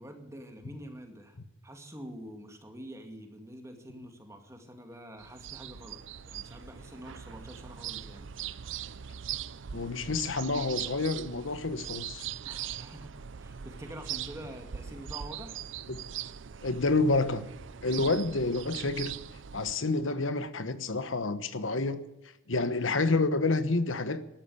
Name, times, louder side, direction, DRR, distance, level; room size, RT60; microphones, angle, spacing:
voice 1, 0.0-1.4 1.6-8.3 12.4-13.1 13.4-15.6, equal, 15° right, 5 dB, 2.2 m, -46 dB
sound 1, 5.2-19.7, right 9 dB, 70° right, 0.5 m, -41 dB
voice 2, 9.7-12.3 15.9-16.0 16.6-17.5 17.8-19.1 19.5-22.0 22.5-24.2, left 3 dB, 80° left, 12 dB, 1.2 m, -29 dB
13.5 x 12.0 x 8.5 m, 0.91 s
head